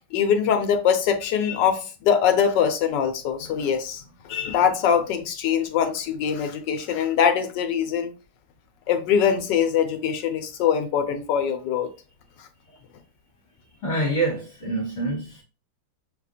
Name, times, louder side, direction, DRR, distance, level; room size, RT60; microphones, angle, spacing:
voice 1, 0.1-8.1 8.9-11.9 12.4-12.5, left 8 dB, 75° left, 1.2 m, -23 dB
voice 2, 13.8-15.3, right 2 dB, 45° left, 1.5 m, -25 dB
6.4 x 2.4 x 2.7 m
omnidirectional pair, 2.0 m